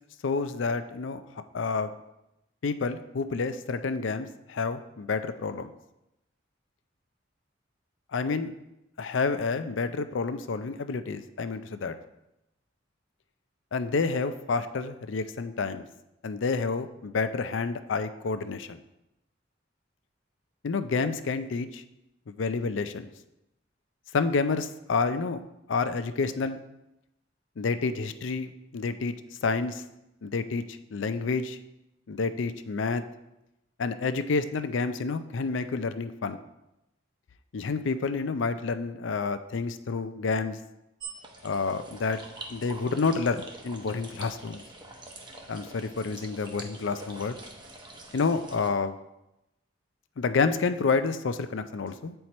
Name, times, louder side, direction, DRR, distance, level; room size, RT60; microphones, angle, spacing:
voice 1, 0.2-1.2 1.5-1.9 2.6-5.7 8.1-8.5 9.0-12.0 13.7-15.9 16.2-18.8 20.6-21.8 22.4-23.1 24.1-25.4 25.7-26.6 27.6-29.1 29.4-29.8 30.2-30.6 30.9-31.6 32.1-33.0 33.8-36.4 37.5-40.6 41.4-42.2 42.5-44.6 45.5-47.4 48.1-49.0 50.2-52.1, left 4 dB, 75° left, 11 dB, 0.5 m, -29 dB
sound 1, 41.0-48.7, right 2 dB, 25° right, 0.8 m, -45 dB
8.0 x 4.5 x 4.2 m, 0.90 s
head